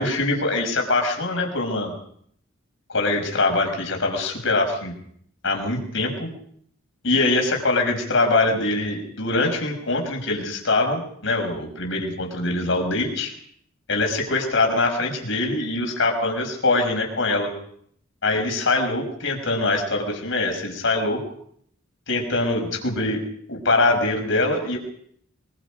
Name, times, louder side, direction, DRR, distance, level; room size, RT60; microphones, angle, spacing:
voice 1, 0.0-1.9 2.9-4.9 5.4-6.3 7.0-13.3 13.9-17.5 18.2-21.2 22.1-23.2 23.5-24.8, left 2 dB, 65° left, 3 dB, 6.1 m, -23 dB
24.5 x 23.0 x 5.2 m, 0.65 s
head